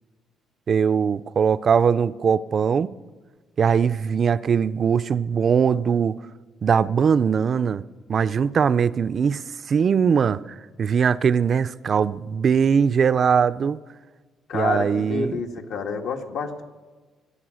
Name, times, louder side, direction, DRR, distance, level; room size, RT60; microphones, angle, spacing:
voice 1, 0.7-2.9 3.6-6.2 6.6-7.8 8.1-9.4 9.7-13.8 14.5-15.4, right 6 dB, 40° right, 0.4 m, -21 dB
voice 2, 14.5-16.6, left 4 dB, 70° left, 1.7 m, -28 dB
24.5 x 8.6 x 6.3 m
cardioid pair, 140°, 0 cm